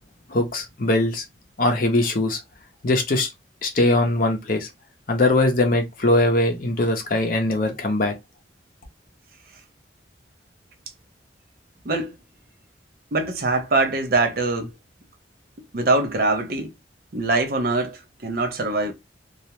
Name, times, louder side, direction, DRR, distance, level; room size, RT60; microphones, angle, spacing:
voice 1, 0.3-1.2 1.6-2.4 2.8-3.3 3.6-4.7 5.1-8.2, left 2 dB, 50° left, 0.6 m, -21 dB
voice 2, 11.8-12.1 13.1-14.7 15.7-16.7 17.1-18.9, right 3 dB, 55° right, 0.6 m, -23 dB
2.3 x 2.1 x 2.9 m
head